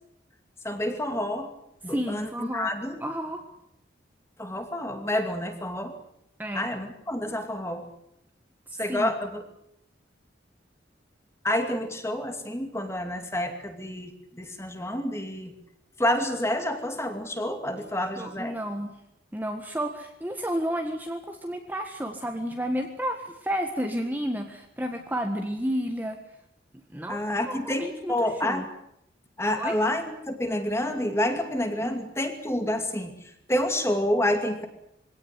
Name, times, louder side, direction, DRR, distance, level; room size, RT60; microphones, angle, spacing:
voice 1, 0.6-1.5 1.8-3.0 4.4-6.0 6.5-7.9 8.8-9.4 11.4-15.5 16.0-18.6 27.1-28.7 29.4-34.7, left 1 dB, 15° left, 7 dB, 2.5 m, -28 dB
voice 2, 1.9-2.7 3.0-3.4 6.4-6.7 8.7-9.1 18.2-18.9 19.3-26.2 26.9-28.7 29.6-29.8 31.8-32.0, equal, 10° right, 4 dB, 1.5 m, -31 dB
23.0 x 17.5 x 9.9 m, 0.79 s
head